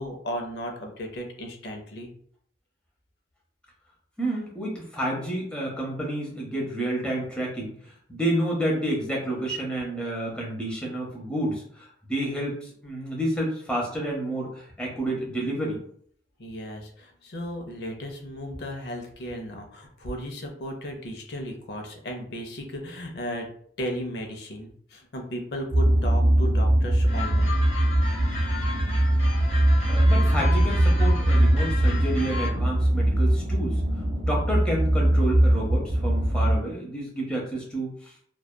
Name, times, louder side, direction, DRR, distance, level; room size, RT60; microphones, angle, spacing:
voice 1, 0.0-2.1 16.4-23.5 23.8-27.6, equal, 75° left, 2 dB, 0.6 m, -35 dB
voice 2, 4.2-15.8 29.9-33.8 34.3-38.1, right 1 dB, 5° left, -3 dB, 0.6 m, -30 dB
sound 1, 25.7-36.6, right 1 dB, 40° right, 0.4 m, -21 dB
sound 2, 27.1-32.5, left 4 dB, 40° left, 0.8 m, -36 dB
2.7 x 2.2 x 2.2 m, 0.62 s
head